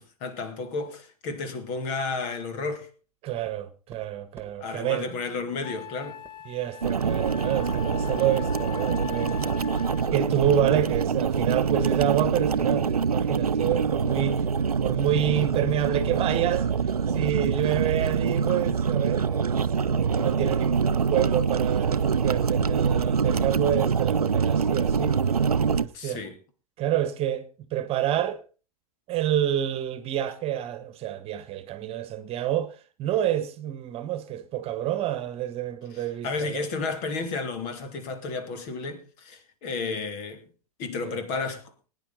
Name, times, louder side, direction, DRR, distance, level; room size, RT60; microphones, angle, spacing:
voice 1, 0.0-2.9 4.6-6.2 25.9-26.4 35.9-40.4 40.8-41.6, left 4 dB, 45° left, 2.9 m, -32 dB
voice 2, 3.2-5.1 6.4-9.8 10.1-14.5 14.8-16.7 17.1-25.2 25.7-26.2 26.8-28.4 29.1-36.7 41.0-41.2, right 11 dB, 30° right, 1.5 m, -28 dB
sound 1, 3.4-3.6 3.9-4.7 6.2-6.4 6.8-7.0 7.4-7.7 8.5-8.6 9.1-10.2 11.2-11.3 11.7-13.5, right 4 dB, 15° right, 2.1 m, -50 dB
Wind instrument woodwind instrument, 5.0-5.1 5.6-10.3, left 13 dB, 25° left, 0.9 m, -40 dB
sound 2, 6.8-25.8, right 6 dB, 85° right, 0.6 m, -25 dB
20.0 x 10.0 x 4.0 m
figure-of-eight pair, 100°, 19 cm